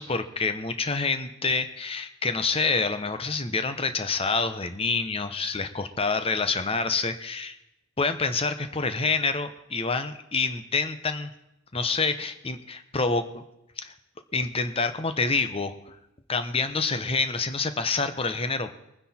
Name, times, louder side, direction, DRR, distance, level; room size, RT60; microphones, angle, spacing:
voice 1, 0.0-7.6 8.0-11.3 11.7-13.4 13.8-13.9 14.3-16.0 16.3-18.7, left 4 dB, 25° left, 10 dB, 0.9 m, -27 dB
22.5 x 9.8 x 4.3 m, 0.86 s
head